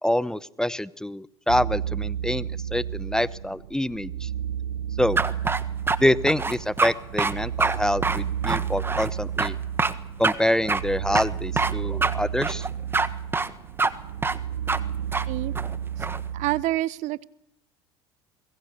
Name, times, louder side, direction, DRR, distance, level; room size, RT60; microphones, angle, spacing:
voice 1, 0.0-4.3 5.0-5.2 6.0-9.6 10.2-12.7, left 1 dB, 5° left, 18 dB, 0.9 m, -26 dB
sound 1, 1.5-16.6, right 9 dB, 85° right, 0.9 m, -32 dB
sound 2, 5.2-6.0 6.3-6.9 7.2-7.3 7.6-7.8 8.0-9.1 9.4-9.5 9.8-9.9 10.2-10.3 10.7-10.8 11.1-11.7 12.0-12.1 12.4-13.1 13.3-13.5 13.8-13.9 14.2-14.4 14.7-14.8 15.1-15.2 15.5-16.2, right 3 dB, 15° right, 1.4 m, -24 dB
voice 2, 16.3-17.2, right 16 dB, 55° right, 20 dB, 0.9 m, -27 dB
25.0 x 22.5 x 6.7 m, 0.77 s
hypercardioid pair, 90°, 14 cm